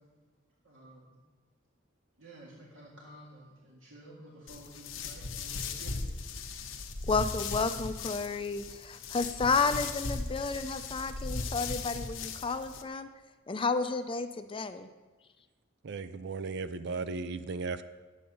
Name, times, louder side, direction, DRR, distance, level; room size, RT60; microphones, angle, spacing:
voice 1, 0.6-1.1 2.2-6.0, right 1 dB, 75° right, -5 dB, 1.9 m, -52 dB
sound 1, 4.5-12.8, left 4 dB, 85° left, 0.9 m, -38 dB
voice 2, 7.1-13.1 13.5-14.9, left 4 dB, 25° left, 9 dB, 0.5 m, -31 dB
voice 3, 15.8-17.8, right 4 dB, 60° right, 12 dB, 0.5 m, -36 dB
10.0 x 8.6 x 5.5 m, 1.3 s
head